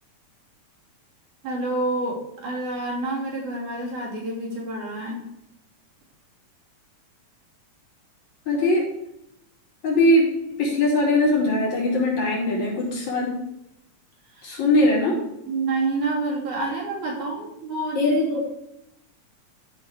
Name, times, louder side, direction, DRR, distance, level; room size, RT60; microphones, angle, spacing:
voice 1, 1.4-5.2 14.3-14.6 15.5-18.0, right 2 dB, 75° right, -2 dB, 4.2 m, -28 dB
voice 2, 8.5-8.9 9.8-10.2 10.5-13.4 14.4-15.2 17.9-18.4, left 1 dB, 70° left, -4 dB, 4.3 m, -21 dB
13.0 x 5.2 x 4.9 m, 0.81 s
omnidirectional pair, 3.5 m